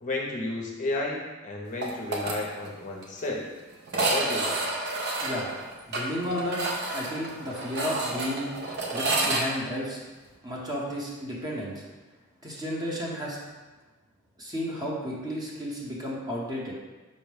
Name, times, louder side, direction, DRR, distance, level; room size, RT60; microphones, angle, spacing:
voice 1, 0.0-3.5 4.1-4.7, left 2 dB, 35° left, -1 dB, 0.6 m, -32 dB
sound 1, 1.8-2.4 2.7-2.8 3.0-3.1 3.9-9.4, right 2 dB, 50° right, 0.6 m, -29 dB
voice 2, 5.2-5.5 5.9-6.6 6.9-8.5 8.9-10.0 10.4-11.8 12.4-13.4 14.4-16.7, equal, 20° right, -4 dB, 0.8 m, -32 dB
5.2 x 2.1 x 4.8 m, 1.2 s
head